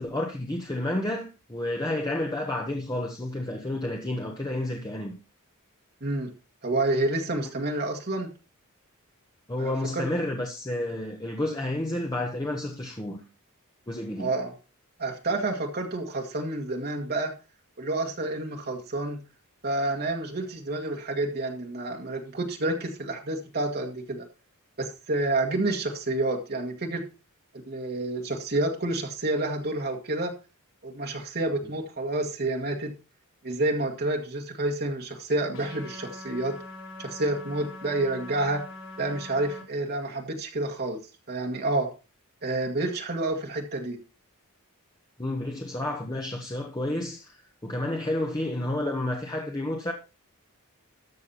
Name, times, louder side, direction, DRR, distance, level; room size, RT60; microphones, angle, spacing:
voice 1, 0.0-5.2 7.4-7.5 9.5-13.2 13.9-14.3 45.2-49.9, left 1 dB, 20° left, 1.4 m, -30 dB
voice 2, 6.6-8.3 9.6-10.1 14.2-14.5 15.0-17.3 17.8-19.2 19.6-24.2 24.8-27.0 27.7-30.3 30.8-32.9 33.4-36.5 37.0-38.6 39.0-41.0 41.3-41.9 42.4-44.0, right 2 dB, 45° right, 1.9 m, -29 dB
sound 1, 35.5-39.6, left 2 dB, 65° left, 3.1 m, -42 dB
13.5 x 6.5 x 4.2 m
head